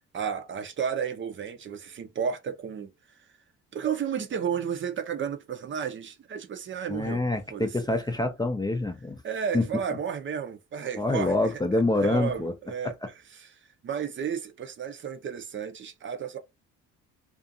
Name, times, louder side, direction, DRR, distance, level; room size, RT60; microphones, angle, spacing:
voice 1, 0.1-2.9 3.7-8.0 9.2-11.5 12.0-12.9 13.4-13.5 13.8-16.4, right 7 dB, 40° right, 0.6 m, -32 dB
voice 2, 6.9-9.2 9.5-9.6 11.0-12.5 12.8-13.1, left 2 dB, 15° left, 0.5 m, -26 dB
2.5 x 2.4 x 2.6 m
supercardioid pair, 85°, 30 cm